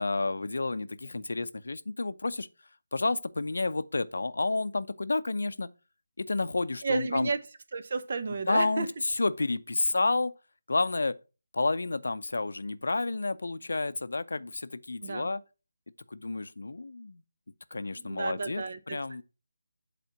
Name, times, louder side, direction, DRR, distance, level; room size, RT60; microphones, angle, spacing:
voice 1, 0.0-2.5 2.9-5.7 6.2-7.3 8.5-10.3 10.7-11.2 11.5-15.4 16.1-17.2 17.7-19.2, left 3 dB, 65° left, 0.6 m, -30 dB
voice 2, 6.8-7.4 7.7-8.9 15.0-15.3 18.0-19.2, right 4 dB, 50° right, 1.0 m, -32 dB
8.0 x 4.2 x 5.9 m
figure-of-eight pair, 155°, 0 cm